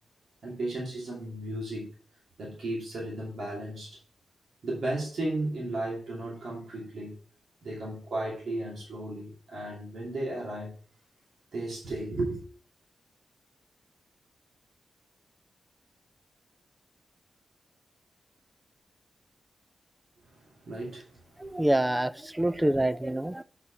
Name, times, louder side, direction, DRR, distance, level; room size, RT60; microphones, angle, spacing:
voice 1, 0.4-1.9 2.4-4.0 4.6-7.2 7.6-10.7 11.5-12.4 20.3-21.7, right 1 dB, 65° right, -4 dB, 2.7 m, -35 dB
voice 2, 21.4-23.4, right 1 dB, 10° right, 15 dB, 0.3 m, -26 dB
6.9 x 5.5 x 4.7 m, 0.43 s
wide cardioid pair, 165°, 0 cm